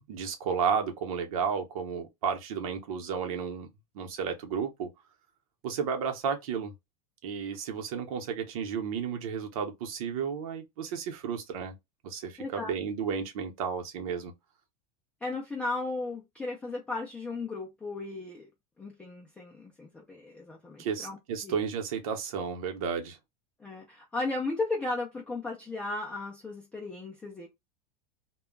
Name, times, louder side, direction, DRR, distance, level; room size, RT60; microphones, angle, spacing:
voice 1, 0.0-3.7 3.9-4.9 5.6-6.7 7.2-11.7 12.0-14.3 20.8-23.2, right 6 dB, 70° right, 0.9 m, -32 dB
voice 2, 12.4-12.7 15.2-18.5 18.8-21.2 21.4-21.6 23.6-27.5, left 3 dB, 5° left, 0.4 m, -35 dB
2.3 x 2.1 x 3.6 m
supercardioid pair, 165°, 19 cm